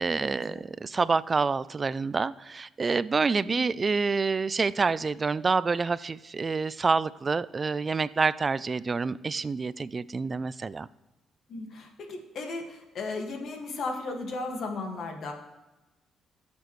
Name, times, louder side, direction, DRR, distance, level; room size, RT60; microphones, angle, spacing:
voice 1, 0.0-10.9, right 4 dB, 35° right, 18 dB, 0.3 m, -27 dB
voice 2, 11.5-15.3, left 3 dB, 60° left, 3 dB, 1.8 m, -35 dB
16.5 x 7.0 x 3.2 m, 1.0 s
cardioid pair, 90°, 0 cm